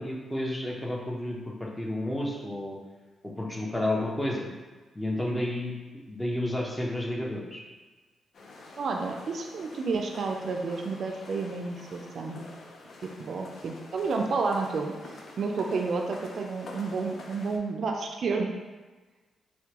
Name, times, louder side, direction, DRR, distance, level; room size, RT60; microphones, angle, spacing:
voice 1, 0.0-2.8 3.4-4.4 4.9-7.6, left 1 dB, 10° left, -2 dB, 0.7 m, -31 dB
sound 1, 8.3-17.6, left 2 dB, 60° left, 0.5 m, -47 dB
voice 2, 8.8-12.4 13.0-14.9 15.4-18.5, right 4 dB, 60° right, 2 dB, 0.4 m, -30 dB
4.4 x 2.2 x 2.9 m, 1.3 s
cardioid pair, 75°, 0 cm